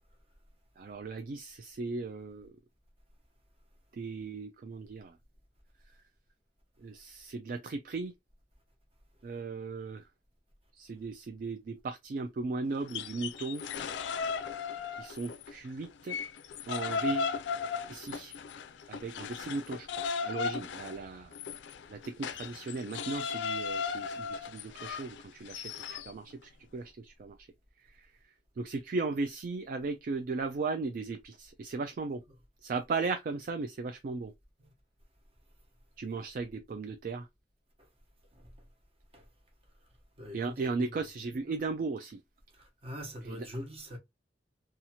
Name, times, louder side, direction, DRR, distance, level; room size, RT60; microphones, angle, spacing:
voice 1, 0.8-2.5 3.9-5.2 6.8-8.1 9.2-10.1 10.8-13.6 15.0-16.2 16.7-17.3 17.9-18.4 18.9-21.4 21.9-27.5 27.8-28.1 28.6-32.2 32.6-34.3 36.0-37.3 40.3-42.2 43.2-43.5, right 3 dB, 50° right, 0.3 m, -37 dB
sound 1, 12.8-15.5 15.8-26.1, left 5 dB, 85° left, 0.3 m, -36 dB
voice 2, 40.2-41.6 42.5-44.0, equal, 35° right, 0.9 m, -44 dB
2.8 x 2.4 x 2.7 m
head